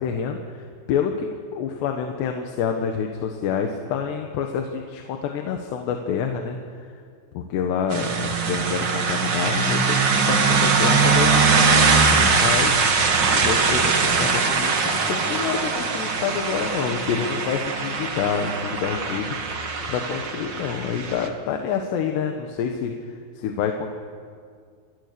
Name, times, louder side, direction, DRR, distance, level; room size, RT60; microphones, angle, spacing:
voice 1, 0.0-6.9 7.4-22.9 23.4-23.9, left 7 dB, 80° left, 3 dB, 3.5 m, -28 dB
sound 1, 7.9-21.3, right 4 dB, 50° right, 1.3 m, -21 dB
29.5 x 23.5 x 6.9 m, 2.1 s
omnidirectional pair, 4.8 m